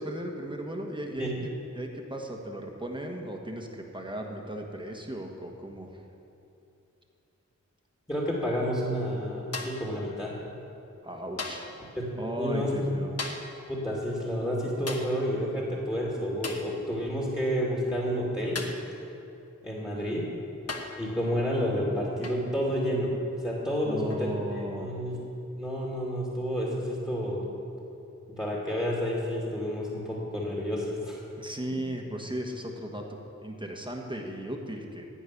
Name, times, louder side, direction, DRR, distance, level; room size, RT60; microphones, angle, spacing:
voice 1, 0.0-6.0 11.0-11.8 12.2-13.1 19.9-20.1 23.8-24.9 31.4-33.1 33.4-35.0, right 1 dB, 15° right, 1 dB, 1.5 m, -36 dB
voice 2, 8.1-10.3 12.0-12.7 13.7-18.6 19.6-20.2 21.0-23.1 23.4-24.3 24.8-25.2 25.6-27.5 28.4-31.2, equal, 15° left, -4 dB, 2.6 m, -30 dB
sound 1, 9.5-9.9 11.4-11.8 13.2-13.6 14.9-15.2 16.4-16.7 18.6-18.9 20.0-20.1 20.7-21.1 22.2-22.5 24.1-24.3, left 3 dB, 55° left, 1.3 m, -37 dB
15.5 x 5.4 x 9.8 m, 2.8 s
wide cardioid pair, 75°, 30 cm